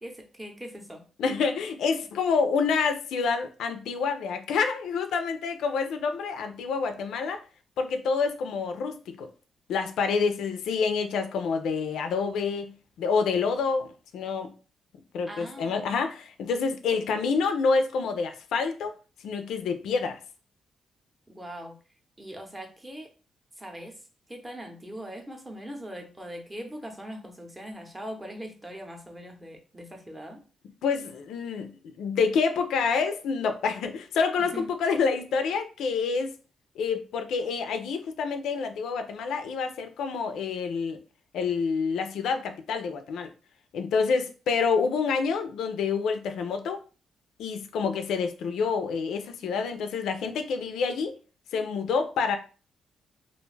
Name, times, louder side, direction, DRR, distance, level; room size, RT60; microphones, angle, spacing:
voice 1, 0.0-1.0 15.3-15.8 21.3-21.7 22.2-23.1 23.6-24.0 24.3-30.4 34.4-34.7, equal, 15° right, 0.6 m, -41 dB
voice 2, 1.2-7.4 7.8-9.3 9.7-14.5 15.1-19.0 19.2-20.2 30.8-36.3 36.8-41.0 41.3-43.3 43.7-46.8 47.4-51.2 51.5-52.4, left 5 dB, 85° left, 0.3 m, -27 dB
2.4 x 2.2 x 3.1 m
cardioid pair, 115°, 0 cm